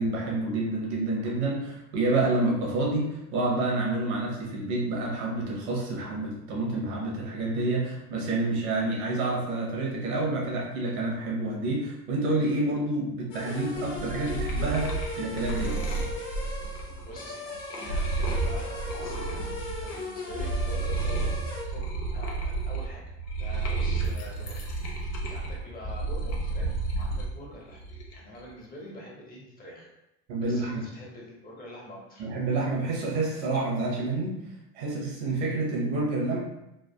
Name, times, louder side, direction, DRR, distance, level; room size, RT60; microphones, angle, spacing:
voice 1, 0.0-15.8 30.3-30.8 32.2-34.4 34.7-36.4, right 2 dB, 90° right, -3 dB, 0.9 m, -28 dB
sound 1, 13.3-21.6, left 2 dB, 85° left, 1.1 m, -38 dB
sound 2, 13.7-20.0 20.3-27.3 27.7-28.4, right 3 dB, 50° left, 0.8 m, -31 dB
voice 2, 16.7-21.3 21.7-21.8 22.1-23.0 23.3-24.7 25.0-27.8 28.1-29.9 30.4-32.2, equal, 25° left, -4 dB, 1.1 m, -45 dB
3.2 x 2.4 x 2.2 m, 0.90 s
supercardioid pair, 95°, 32 cm